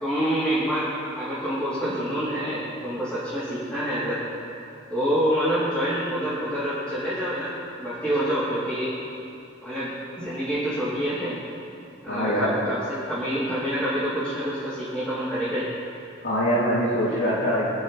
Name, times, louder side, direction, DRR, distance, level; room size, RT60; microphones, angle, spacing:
voice 1, 0.0-4.2 4.9-8.9 9.6-11.4 12.0-12.8 13.1-15.7, equal, 5° left, -13 dB, 3.2 m, -27 dB
voice 2, 12.1-12.5 16.2-17.7, equal, 80° left, -9 dB, 2.9 m, -23 dB
28.0 x 9.6 x 3.3 m, 2.7 s
head